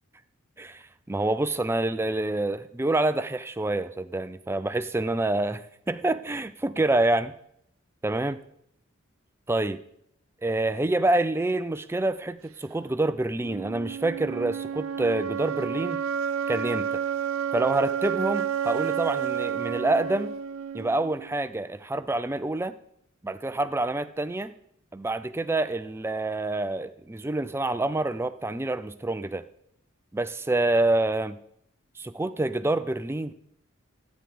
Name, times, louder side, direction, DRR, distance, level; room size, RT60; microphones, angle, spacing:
voice 1, 1.1-7.3 8.0-8.4 9.5-9.8 10.4-16.0 16.5-17.0 17.5-20.3 20.7-22.7 23.2-24.5 24.9-29.5 30.1-31.4 32.0-33.3, right 2 dB, 10° right, 12 dB, 0.4 m, -27 dB
sound 1, 13.4-21.4, right 8 dB, 80° right, 0.5 m, -30 dB
12.0 x 9.2 x 5.0 m, 0.72 s
head